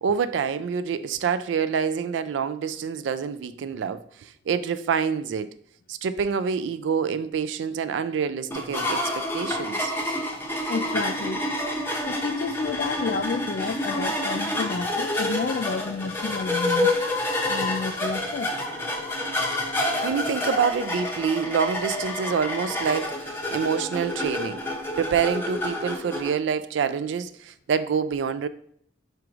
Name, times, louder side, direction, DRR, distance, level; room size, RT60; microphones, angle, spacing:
voice 1, 0.0-5.5 5.9-9.9 20.0-23.3 23.5-24.6 25.0-28.5, right 6 dB, 80° right, 0.3 m, -27 dB
sound 1, 8.5-26.3, left 1 dB, 15° left, 0.6 m, -28 dB
voice 2, 10.7-11.4 12.0-16.9 17.5-18.5, left 5 dB, 55° left, 0.3 m, -30 dB
4.9 x 4.5 x 2.4 m
head